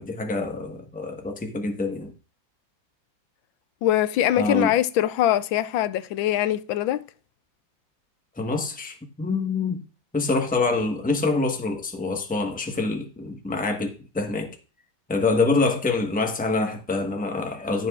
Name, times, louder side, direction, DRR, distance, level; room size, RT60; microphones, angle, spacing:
voice 1, 0.0-2.1 4.4-4.7 8.4-9.8 10.1-14.5 15.1-17.9, left 3 dB, 5° left, 0.9 m, -26 dB
voice 2, 3.8-7.0, left 12 dB, 85° left, 1.4 m, -22 dB
15.5 x 6.9 x 2.4 m
omnidirectional pair, 2.1 m